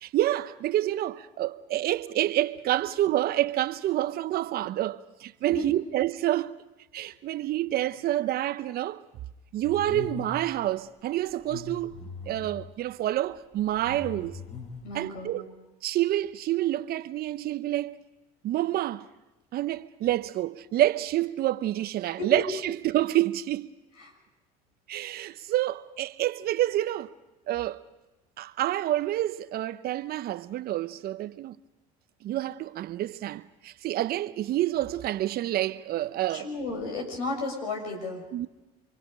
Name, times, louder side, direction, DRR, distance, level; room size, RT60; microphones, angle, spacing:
voice 1, 0.0-6.6 6.9-9.0 9.5-11.9 12.3-14.4 14.9-15.5 15.8-18.0 18.4-19.1 19.5-23.7 24.9-27.1 27.5-27.8 28.4-31.6 32.2-36.5 38.3-38.5, right 14 dB, 55° right, 0.9 m, -28 dB
sound 1, 9.6-10.5 11.3-12.7 13.6-14.9, left 4 dB, 40° left, 7.0 m, -40 dB
voice 2, 14.8-15.5 22.2-22.4 24.0-24.1 36.3-38.2, left 2 dB, 80° left, 6.7 m, -33 dB
29.0 x 24.0 x 5.2 m
hypercardioid pair, 80°, 19 cm